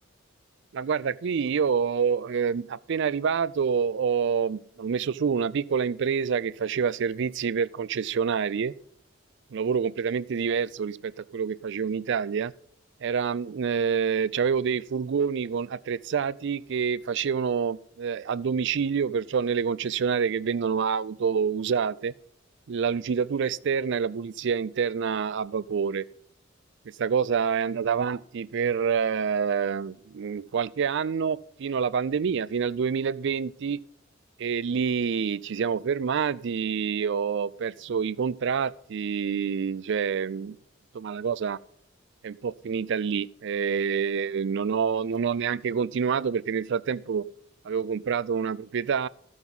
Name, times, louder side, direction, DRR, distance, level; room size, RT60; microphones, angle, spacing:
voice 1, 0.7-8.7 9.5-12.5 13.0-22.1 22.7-26.1 27.0-33.8 34.4-40.6 40.9-41.6 42.2-47.3 47.6-49.1, right 6 dB, 65° right, 0.4 m, -27 dB
13.5 x 6.1 x 5.4 m
head